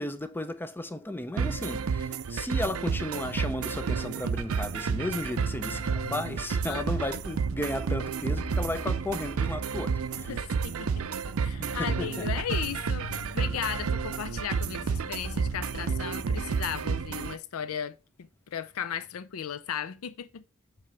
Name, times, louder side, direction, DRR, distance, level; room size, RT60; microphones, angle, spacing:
voice 1, 0.0-10.3 11.6-12.3, left 1 dB, 10° left, 0.5 m, -34 dB
sound 1, 1.4-17.3, right 6 dB, 75° right, 0.5 m, -31 dB
sound 2, 3.1-17.2, left 2 dB, 35° left, 0.9 m, -44 dB
voice 2, 6.6-7.2 10.3-20.4, left 8 dB, 75° left, 0.4 m, -36 dB
7.5 x 3.2 x 4.5 m
head